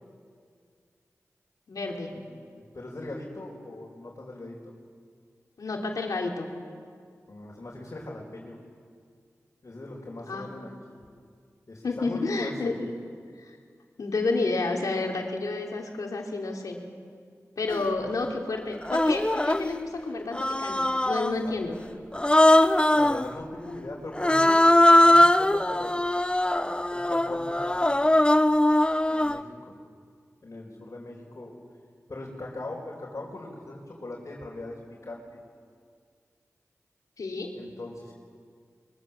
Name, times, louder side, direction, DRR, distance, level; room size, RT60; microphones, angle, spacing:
voice 1, 1.7-2.1 5.6-6.5 10.3-10.5 11.8-12.9 13.4-13.6 14.0-16.8 17.6-21.8 37.2-37.6, left 3 dB, 85° left, 1 dB, 3.2 m, -30 dB
voice 2, 2.5-4.7 7.3-8.6 9.6-11.0 11.7-12.7 17.9-18.1 21.4-21.7 22.9-26.0 26.9-27.9 28.2-28.3 29.1-29.8 30.4-31.5 32.1-35.4 37.5-38.1, left 2 dB, 55° left, -4 dB, 4.9 m, -40 dB
Human voice, 17.7-17.8 18.8-19.7 20.3-21.4 22.1-23.3 24.2-29.4, left 1 dB, 15° left, 0.9 m, -21 dB
24.5 x 23.0 x 7.6 m, 2.1 s
cardioid pair, 40°, 6 cm